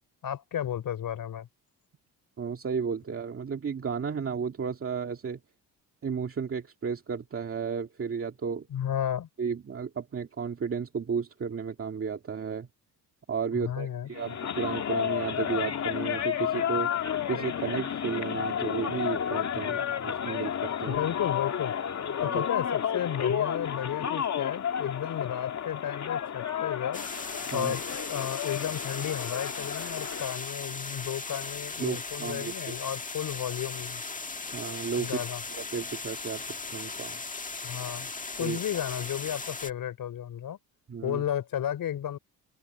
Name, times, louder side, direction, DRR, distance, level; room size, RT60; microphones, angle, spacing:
voice 1, 0.2-1.5 8.7-9.3 13.5-14.1 20.9-21.7 22.2-27.1 27.5-34.0 35.0-35.4 37.6-38.1 38.4-40.6 41.0-42.2, left 10 dB, 60° left, 3.8 m, -33 dB
voice 2, 2.4-5.4 6.0-8.7 9.4-12.7 13.3-16.9 17.3-21.0 22.2-22.4 27.5-27.7 31.8-32.8 34.5-35.2 35.5-37.2 38.4-38.6 40.9-41.2, right 6 dB, 35° right, 2.2 m, -33 dB
sound 1, 14.1-30.4, left 8 dB, 45° left, 2.3 m, -31 dB
sound 2, 26.9-39.7, left 4 dB, 20° left, 1.6 m, -38 dB
open air
cardioid pair, 95°, 38 cm